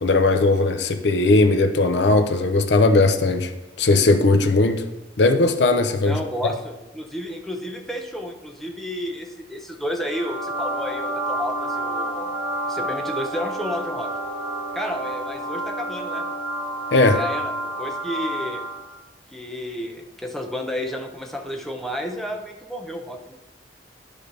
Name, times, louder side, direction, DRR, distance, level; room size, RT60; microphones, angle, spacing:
voice 1, 0.0-3.5 3.8-4.8 5.2-6.2 16.9-17.2, left 2 dB, 70° left, 7 dB, 0.6 m, -18 dB
voice 2, 6.0-12.3 12.7-14.1 14.7-16.3 17.1-17.5 17.8-18.6 19.3-23.3, equal, ahead, 2 dB, 0.7 m, -31 dB
sound 1, 10.0-18.9, right 1 dB, 75° right, 2.3 m, -29 dB
11.5 x 5.1 x 3.3 m, 1.0 s
head